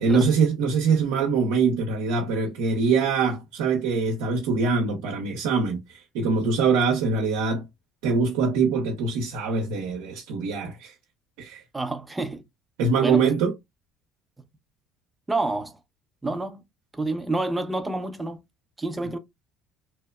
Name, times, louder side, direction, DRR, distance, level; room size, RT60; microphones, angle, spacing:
voice 1, 0.0-7.7 8.0-10.9 11.4-11.6 12.8-13.5, right 4 dB, 80° right, 0.6 m, -23 dB
voice 2, 11.7-12.4 13.0-13.3 15.3-15.8 16.2-16.6 16.9-18.4 18.8-19.2, right 2 dB, 15° right, 0.5 m, -28 dB
2.8 x 2.0 x 2.2 m
supercardioid pair, 85°, 0 cm